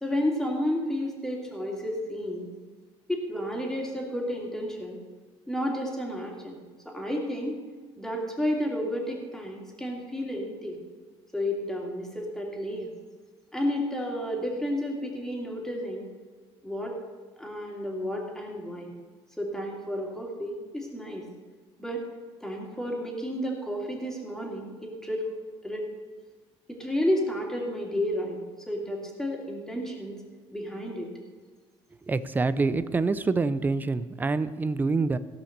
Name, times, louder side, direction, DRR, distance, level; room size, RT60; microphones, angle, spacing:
voice 1, 0.0-2.5 3.1-5.0 5.5-7.6 8.0-10.8 11.3-12.9 13.5-16.1 16.6-16.9 17.4-19.0 19.4-21.3 21.8-22.0 22.4-25.3 25.6-25.9 26.7-30.2 30.5-31.1, left 1 dB, 5° left, -1 dB, 2.5 m, -31 dB
voice 2, 32.1-35.2, right 3 dB, 15° right, 14 dB, 0.5 m, -26 dB
16.5 x 5.7 x 6.6 m, 1.4 s
cardioid pair, 125°, 11 cm